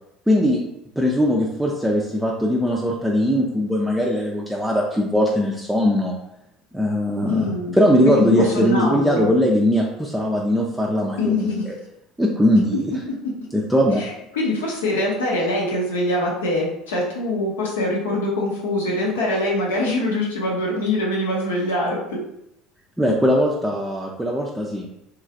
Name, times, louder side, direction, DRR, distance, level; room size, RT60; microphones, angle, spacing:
voice 1, 0.3-0.6 1.0-6.1 6.7-11.7 12.2-12.9 13.5-14.0 23.0-24.9, equal, 5° right, -2 dB, 0.4 m, -20 dB
voice 2, 7.3-7.8 8.0-9.3 11.2-11.7 12.7-12.8 14.0-22.2, left 1 dB, 80° left, -3 dB, 0.8 m, -23 dB
2.9 x 2.3 x 2.5 m, 0.81 s
hypercardioid pair, 70°, 0 cm